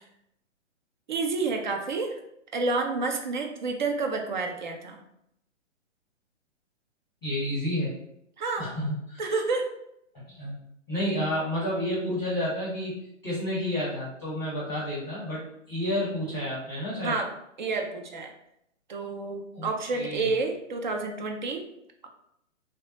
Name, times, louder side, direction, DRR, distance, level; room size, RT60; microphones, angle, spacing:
voice 1, 1.1-2.2 2.5-5.0 8.4-8.7 9.2-9.7 17.0-17.3 17.6-18.3 18.9-21.6, right 3 dB, 40° right, 3 dB, 0.4 m, -29 dB
voice 2, 7.2-7.9 8.6-9.2 10.3-10.5 10.9-17.2 19.5-20.3, left 1 dB, 10° left, -9 dB, 0.7 m, -30 dB
3.2 x 2.0 x 2.7 m, 0.77 s
hypercardioid pair, 140°, 38 cm